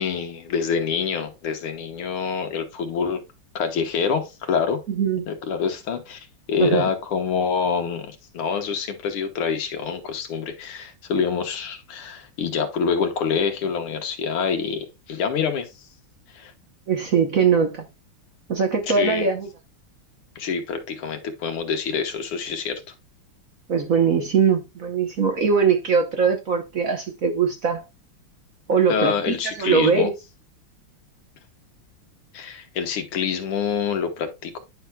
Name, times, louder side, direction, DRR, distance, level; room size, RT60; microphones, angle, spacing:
voice 1, 0.0-3.2 3.6-4.8 5.3-15.7 16.3-16.5 18.9-19.3 20.4-22.8 28.9-30.1 32.3-34.6, left 6 dB, 90° left, 2.1 m, -26 dB
voice 2, 4.9-5.3 6.6-6.9 16.9-17.8 18.5-19.5 23.7-27.8 28.7-30.1, right 6 dB, 55° right, 1.0 m, -21 dB
10.0 x 5.8 x 2.2 m
omnidirectional pair, 2.3 m